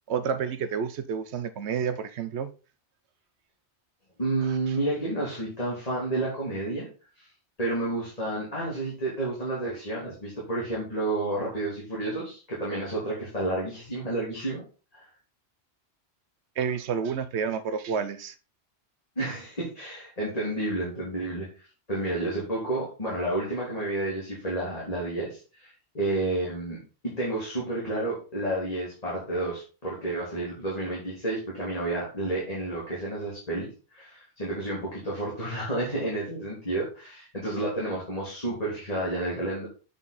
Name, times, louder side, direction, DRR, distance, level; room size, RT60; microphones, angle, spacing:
voice 1, 0.1-2.5 4.4-4.8 16.6-18.3, right 7 dB, 80° right, 1.0 m, -30 dB
voice 2, 4.2-6.9 7.2-7.3 7.6-14.6 14.9-15.0 19.1-21.5 21.9-39.7, right 2 dB, 35° left, 3.3 m, -30 dB
8.6 x 5.3 x 4.1 m
omnidirectional pair, 1.1 m